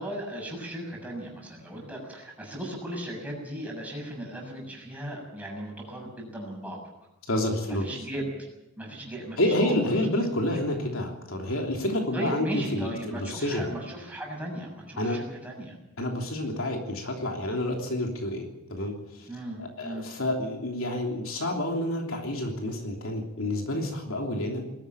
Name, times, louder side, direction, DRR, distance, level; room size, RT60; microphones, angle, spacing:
voice 1, 0.0-6.8 7.6-8.3 8.8-10.6 12.1-15.8 19.3-20.1, right 1 dB, 5° right, -1 dB, 6.9 m, -37 dB
voice 2, 7.3-7.9 9.4-13.7 15.0-15.2 16.0-19.3 19.6-24.6, left 1 dB, 65° left, 2 dB, 3.2 m, -29 dB
20.5 x 14.0 x 9.3 m, 0.94 s
head